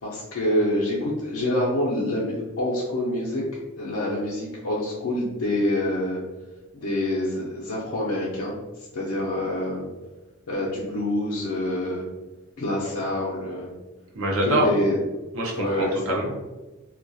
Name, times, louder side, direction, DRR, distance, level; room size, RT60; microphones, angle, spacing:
voice 1, 0.0-3.4 3.8-6.2 6.7-8.6 8.9-9.8 10.5-12.1 12.6-13.7 14.4-15.0 15.6-16.0, left 1 dB, 85° left, -5 dB, 0.5 m, -26 dB
voice 2, 14.2-14.7 15.4-16.4, right 1 dB, 70° right, 0 dB, 0.6 m, -25 dB
2.3 x 2.1 x 2.6 m, 1.1 s
head